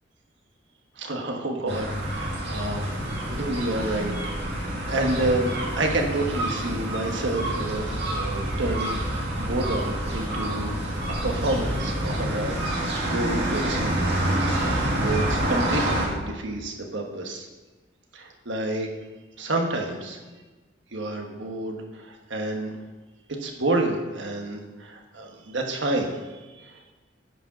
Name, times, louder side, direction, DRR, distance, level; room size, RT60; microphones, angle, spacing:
voice 1, 1.0-4.1 4.4-10.7 11.1-14.2 14.5-17.5 18.1-18.9 19.4-20.2 20.9-22.7 23.3-26.9, right 2 dB, 80° right, 2 dB, 1.3 m, -29 dB
sound 1, 1.7-16.1, right 1 dB, 60° right, 2.0 m, -27 dB
9.4 x 5.2 x 5.9 m, 1.2 s
head